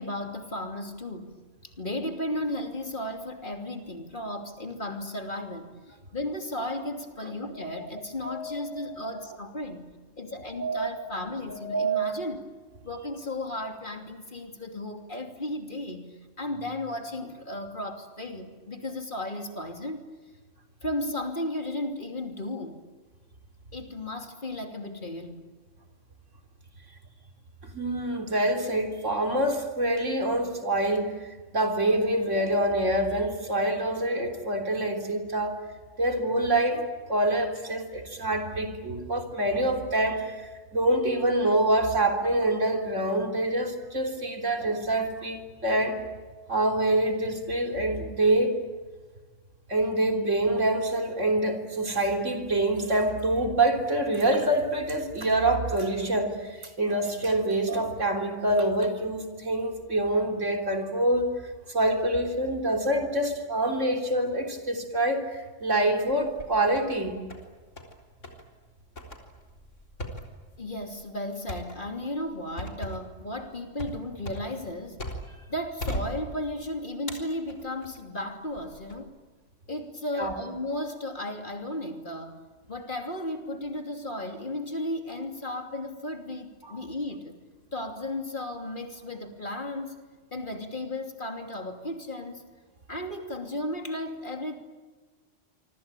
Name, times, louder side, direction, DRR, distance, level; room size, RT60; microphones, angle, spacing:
voice 1, 0.0-1.3 1.6-9.9 10.2-12.4 12.8-20.0 20.8-22.8 23.7-25.4 70.6-75.0 75.5-79.1 79.7-82.4 82.7-87.4 87.7-90.0 90.3-92.4 92.9-94.6, equal, 40° left, 4 dB, 3.1 m, -34 dB
voice 2, 7.2-7.6 8.2-9.1 10.3-10.5 11.5-11.8 27.6-35.6 36.0-46.0 46.5-48.6 49.7-61.3 61.7-67.2 80.1-80.4 86.6-86.7, right 1 dB, 80° right, 4 dB, 4.0 m, -26 dB
sound 1, 66.1-67.0 67.3-68.0 68.2-68.4 69.0-75.4 75.8-76.6 77.1-78.0 78.6-79.0, equal, 80° left, 4.1 m, -38 dB
26.5 x 24.5 x 9.1 m, 1.4 s
omnidirectional pair, 1.3 m